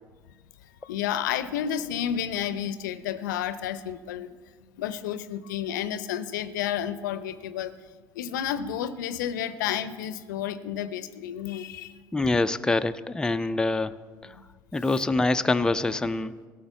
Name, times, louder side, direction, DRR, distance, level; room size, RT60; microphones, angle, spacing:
voice 1, 0.8-4.4 4.8-7.8 8.1-11.9 14.3-14.4, left 10 dB, 75° left, 14 dB, 0.6 m, -31 dB
voice 2, 12.1-13.9 14.7-16.3, left 2 dB, 5° left, 10 dB, 0.4 m, -25 dB
16.5 x 6.4 x 7.0 m, 1.5 s
hypercardioid pair, 60°, 10 cm